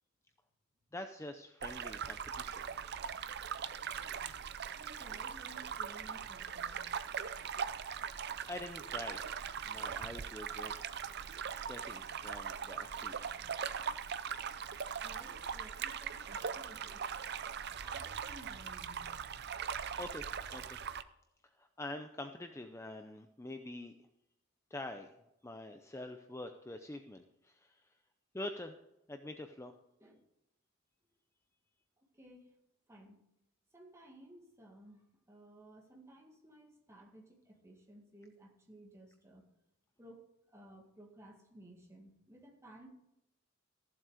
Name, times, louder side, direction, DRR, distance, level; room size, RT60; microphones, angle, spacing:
voice 1, 0.9-2.5 8.5-9.2 9.6-10.8 11.5-13.2 20.0-20.6 21.6-23.9 24.7-25.1 25.4-27.9 28.3-28.8 29.1-29.8, left 1 dB, 15° left, 6 dB, 0.6 m, -45 dB
sound 1, 1.6-21.0, right 7 dB, 55° right, 0.5 m, -40 dB
voice 2, 4.8-6.9 15.0-17.1 17.8-19.4 30.0-30.2 32.1-32.5 32.9-33.2 33.7-39.5 40.0-42.9, right 1 dB, 15° right, 0 dB, 2.1 m, -57 dB
15.0 x 7.5 x 5.0 m, 0.85 s
head